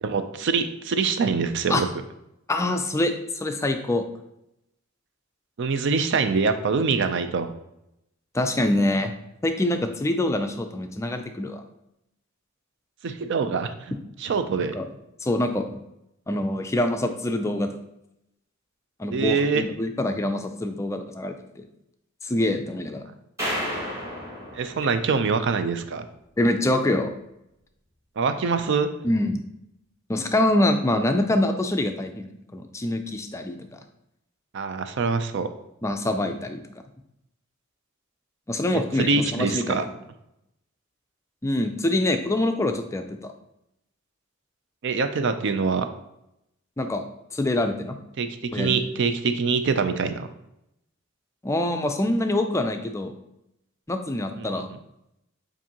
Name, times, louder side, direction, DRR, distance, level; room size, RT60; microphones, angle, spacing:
voice 1, 0.0-1.9 5.6-7.5 13.0-13.9 14.2-14.8 19.1-19.7 24.5-26.1 28.2-28.9 34.5-35.5 38.7-39.8 44.8-45.9 48.2-50.3 54.4-54.6, right 5 dB, 60° right, 9 dB, 0.4 m, -24 dB
voice 2, 2.5-4.0 8.3-9.1 9.4-11.6 14.7-14.9 15.2-15.8 16.3-17.7 19.0-21.7 22.2-23.0 26.4-27.1 29.0-29.4 30.1-33.8 35.8-36.6 38.5-39.9 41.4-43.3 46.8-47.0 47.3-48.0 48.5-48.8 51.4-53.1 53.9-54.7, left 1 dB, 15° left, 6 dB, 0.3 m, -25 dB
sound 1, 23.4-25.7, equal, 15° right, 1.7 m, -32 dB
7.2 x 2.6 x 2.8 m, 0.83 s
head